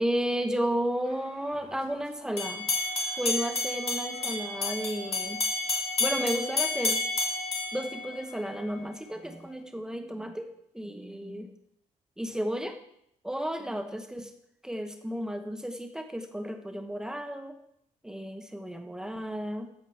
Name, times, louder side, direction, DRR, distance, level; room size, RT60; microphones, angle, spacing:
voice 1, 0.0-2.7 3.2-5.4 6.0-7.0 7.7-10.5 10.7-11.5 12.2-12.8 13.2-14.3 14.6-17.6 18.0-19.7, equal, 5° right, 6 dB, 1.3 m, -33 dB
sound 1, 2.4-8.6, left 3 dB, 50° left, 2.6 m, -30 dB
14.5 x 5.1 x 7.3 m, 0.73 s
cardioid pair, 130°, 13 cm